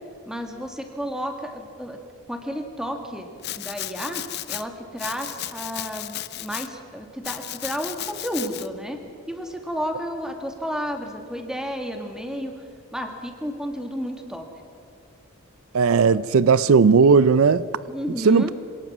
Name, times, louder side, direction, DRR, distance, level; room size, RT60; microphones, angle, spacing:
voice 1, 0.3-2.0 2.3-3.3 3.5-9.0 9.3-12.5 12.9-14.5 17.9-18.5, equal, 5° right, 1.9 m, -32 dB
Domestic sounds home sounds, 3.4-4.6 5.0-6.7 7.2-8.7, left 13 dB, 50° left, 0.7 m, -34 dB
voice 2, 15.7-17.7 18.2-18.5, right 5 dB, 75° right, 0.4 m, -16 dB
26.0 x 18.0 x 6.1 m
head